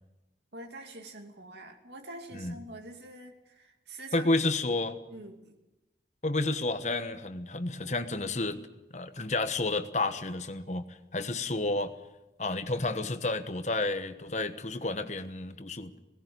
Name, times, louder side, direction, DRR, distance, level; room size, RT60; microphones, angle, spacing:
voice 1, 0.5-4.3 4.7-4.8 5.1-5.5, right 2 dB, 80° right, 3 dB, 2.6 m, -45 dB
voice 2, 4.1-5.0 6.2-8.6 8.9-10.9 11.1-11.9 12.4-15.9, left 2 dB, 40° left, 10 dB, 1.2 m, -30 dB
17.5 x 16.0 x 9.5 m, 1.0 s
head